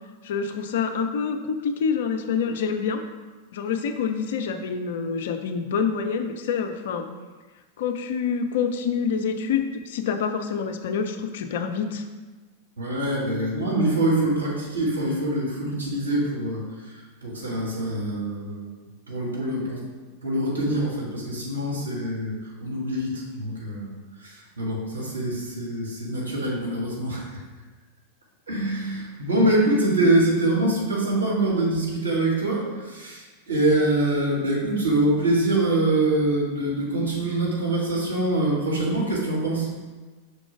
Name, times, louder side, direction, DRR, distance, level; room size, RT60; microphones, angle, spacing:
voice 1, 0.2-3.0 3.5-7.1 7.8-12.0, left 6 dB, 55° left, 7 dB, 0.5 m, -27 dB
voice 2, 12.8-16.9 17.2-18.7 19.1-19.8 20.2-23.9 24.2-27.4 28.5-39.7, right 1 dB, 75° right, -4 dB, 2.0 m, -24 dB
5.8 x 3.7 x 4.8 m, 1.3 s
figure-of-eight pair, 90°, 0 cm